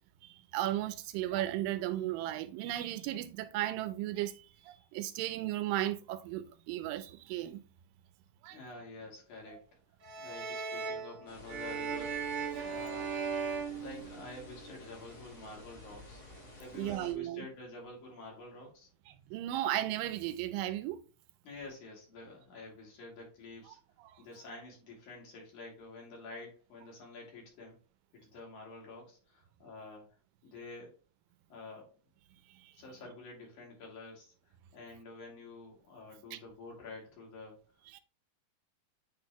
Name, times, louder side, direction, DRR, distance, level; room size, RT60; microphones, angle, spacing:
voice 1, 0.2-7.6 8.4-8.6 9.5-9.6 16.7-17.5 19.1-21.0 24.0-24.2 32.5-32.7 36.3-36.4 37.9-38.0, right 14 dB, 85° right, 2.3 m, -35 dB
voice 2, 8.5-9.8 10.2-12.2 12.6-13.2 13.6-16.2 16.6-18.9 21.4-23.8 24.2-27.8 28.2-30.1 30.4-30.9 31.5-32.0 32.7-37.7, left 3 dB, 65° left, 3.7 m, -49 dB
sound 1, 10.0-14.6, right 5 dB, 50° right, 1.9 m, -38 dB
sound 2, 11.3-17.1, left 1 dB, 25° left, 1.4 m, -52 dB
8.7 x 3.9 x 2.9 m
omnidirectional pair, 3.9 m